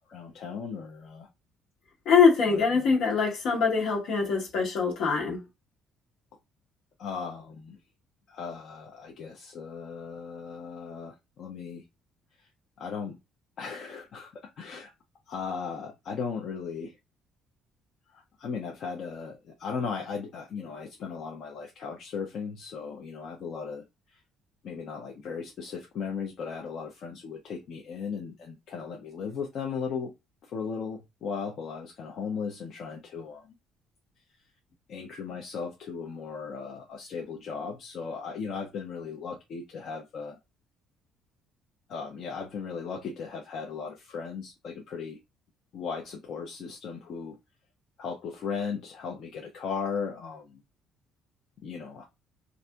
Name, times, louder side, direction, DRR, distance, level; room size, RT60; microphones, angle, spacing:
voice 1, 0.1-1.3 2.5-2.9 7.0-7.8 8.3-11.1 11.4-11.8 12.8-13.2 13.6-14.3 14.6-14.9 15.3-16.9 18.4-23.8 24.6-30.1 30.5-33.5 34.9-40.4 41.9-45.2 45.7-47.4 48.0-50.6 51.6-52.0, left 5 dB, 45° left, 0.6 m, -36 dB
voice 2, 2.0-5.4, left 5 dB, 70° left, 1.4 m, -23 dB
4.1 x 2.5 x 2.2 m
cardioid pair, 165°, 0 cm